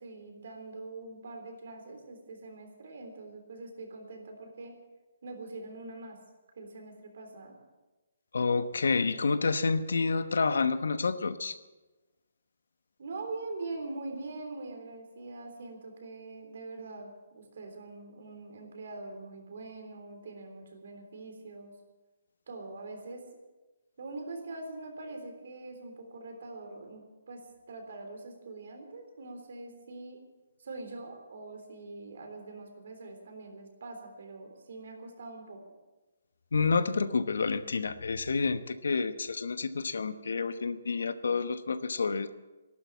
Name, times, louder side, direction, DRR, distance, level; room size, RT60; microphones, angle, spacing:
voice 1, 0.0-4.7 5.2-6.2 6.6-7.6 13.0-21.8 22.5-23.2 24.0-30.2 30.6-35.6, right 3 dB, 50° right, 4 dB, 3.5 m, -43 dB
voice 2, 8.3-11.6 36.5-42.3, left 4 dB, 85° left, 12 dB, 1.0 m, -29 dB
14.0 x 12.0 x 7.3 m, 1.1 s
hypercardioid pair, 175°, 0 cm